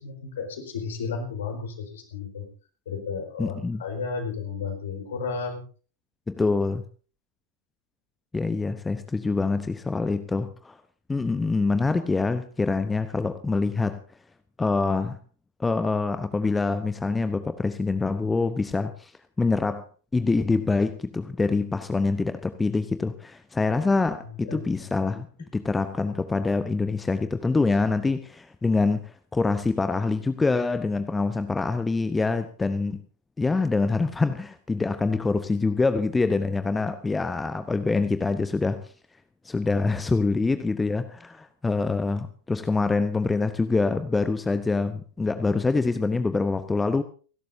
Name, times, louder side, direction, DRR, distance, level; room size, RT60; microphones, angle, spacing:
voice 1, 0.0-2.5 2.9-5.6 24.4-24.9, left 5 dB, 60° left, 4.6 m, -33 dB
voice 2, 3.4-3.8 6.3-6.8 8.3-10.8 11.1-14.0 14.6-15.2 15.6-19.1 19.4-19.8 20.1-25.3 25.5-33.0 33.4-38.9 39.4-47.0, left 3 dB, 10° left, 0.9 m, -25 dB
30.0 x 12.0 x 2.7 m
figure-of-eight pair, 90°, 0 cm